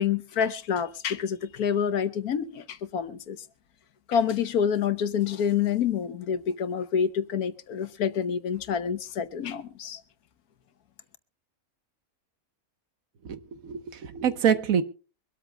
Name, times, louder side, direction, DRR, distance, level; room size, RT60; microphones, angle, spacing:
voice 1, 0.0-3.4 4.1-10.0, left 7 dB, 85° left, 1.5 m, -27 dB
voice 2, 13.2-14.8, right 8 dB, 70° right, 1.5 m, -26 dB
24.0 x 13.0 x 2.2 m
omnidirectional pair, 1.5 m